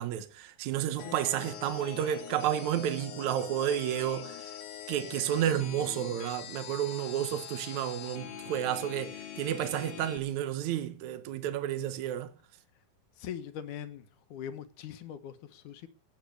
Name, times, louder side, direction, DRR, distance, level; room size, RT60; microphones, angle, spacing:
voice 1, 0.0-4.6 4.9-12.3, right 11 dB, 65° right, 2.3 m, -31 dB
sound 1, 1.0-10.2, left 9 dB, 85° left, 3.6 m, -43 dB
voice 2, 13.2-14.1 14.3-15.9, left 9 dB, 70° left, 2.4 m, -41 dB
16.5 x 9.1 x 6.5 m
omnidirectional pair, 4.1 m